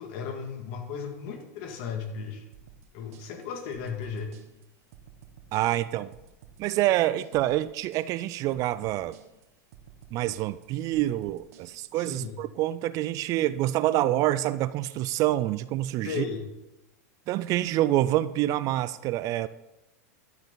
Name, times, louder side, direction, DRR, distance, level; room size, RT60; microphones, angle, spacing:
voice 1, 0.0-2.5 2.9-4.3 11.9-12.4 16.0-16.4, left 6 dB, 55° left, 4 dB, 2.0 m, -35 dB
sound 1, 2.5-12.1, right 8 dB, 65° right, 1.4 m, -53 dB
voice 2, 5.5-6.1 6.6-9.2 10.1-16.3 17.3-19.5, right 14 dB, 45° right, 16 dB, 0.4 m, -27 dB
12.0 x 7.8 x 3.9 m, 0.96 s
hypercardioid pair, 110°, 8 cm